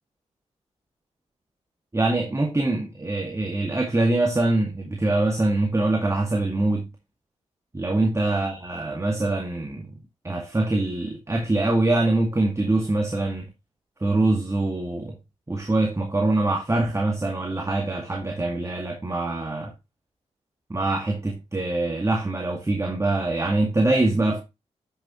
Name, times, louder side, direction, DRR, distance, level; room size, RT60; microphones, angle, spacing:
voice 1, 1.9-6.9 7.7-9.9 10.2-13.5 14.0-15.2 15.5-19.7 20.7-24.4, right 2 dB, 25° right, 2.1 m, -24 dB
10.0 x 6.6 x 3.0 m
cardioid pair, 50°, 13 cm